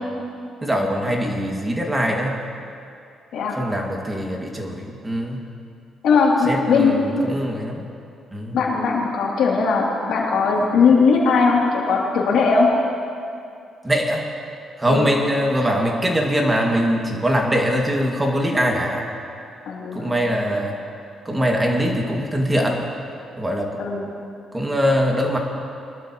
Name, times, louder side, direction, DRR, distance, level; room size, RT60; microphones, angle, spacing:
voice 1, 0.6-2.4 3.5-5.5 6.5-7.8 8.3-8.6 13.8-14.3 14.8-19.1 19.9-20.8 21.3-22.9 23.4-23.8 24.5-25.4, equal, 15° right, 0 dB, 2.1 m, -22 dB
voice 2, 6.0-7.0 8.5-12.7 14.9-15.1 19.7-20.3 23.8-24.1, left 4 dB, 80° left, -3 dB, 2.9 m, -19 dB
22.5 x 12.5 x 3.1 m, 2.5 s
cardioid pair, 90°, 0 cm